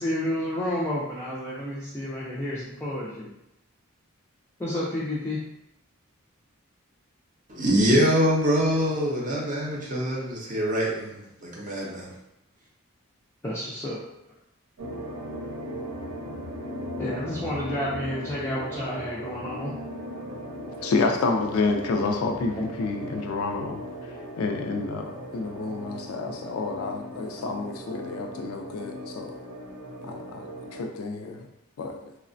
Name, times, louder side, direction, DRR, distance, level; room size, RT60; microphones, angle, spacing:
voice 1, 0.0-3.3 4.6-5.4 13.4-14.0 17.0-19.7, left 1 dB, 10° left, -7 dB, 0.3 m, -30 dB
voice 2, 7.5-11.1 11.4-12.1, equal, 40° right, -3 dB, 0.5 m, -24 dB
sound 1, 14.8-30.8, equal, 75° right, 0.7 m, -38 dB
voice 3, 20.8-23.8 24.4-29.3 30.0-31.5 31.8-32.1, left 3 dB, 85° left, 3 dB, 0.3 m, -29 dB
3.1 x 2.1 x 2.5 m, 0.86 s
head